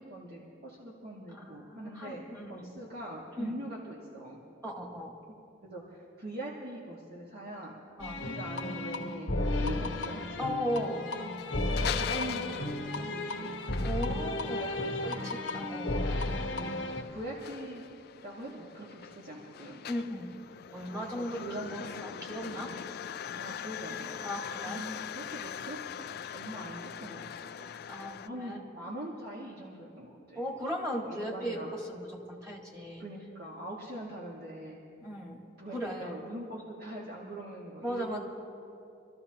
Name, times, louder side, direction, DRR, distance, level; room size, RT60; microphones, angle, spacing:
voice 1, 0.0-4.4 5.6-7.8 8.2-10.5 11.7-13.6 14.5-15.3 16.4-17.8 18.2-19.8 21.0-21.9 23.3-24.3 24.7-26.1 26.3-27.7 28.2-30.4 30.9-31.8 33.0-34.8 35.6-38.2, right 1 dB, 55° right, -5 dB, 1.7 m, -42 dB
voice 2, 1.3-2.7 3.4-3.5 4.6-5.1 8.0-8.2 10.4-11.1 13.8-16.2 19.9-20.3 20.7-21.4 22.0-22.7 24.2-24.8 27.9-28.6 30.4-33.0 35.0-35.4 35.7-36.2 37.8-38.2, equal, 15° right, -1 dB, 1.7 m, -37 dB
sound 1, 8.0-17.0, left 2 dB, 80° left, 1.1 m, -33 dB
sound 2, 11.3-28.3, left 9 dB, 55° left, 0.3 m, -42 dB
25.5 x 13.5 x 2.9 m, 2.8 s
head